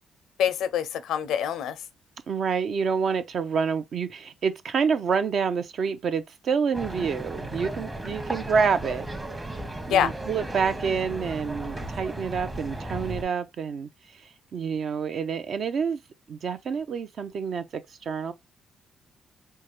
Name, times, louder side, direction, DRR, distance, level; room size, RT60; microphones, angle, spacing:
voice 1, 0.4-1.8 9.9-10.1, left 9 dB, 85° left, 0.5 m, -25 dB
voice 2, 2.3-9.1 9.9-14.2 14.5-16.0 16.3-18.3, right 6 dB, 60° right, 0.5 m, -28 dB
sound 1, 6.7-13.2, right 1 dB, 20° right, 0.9 m, -35 dB
4.6 x 2.2 x 3.1 m
cardioid pair, 90°, 0 cm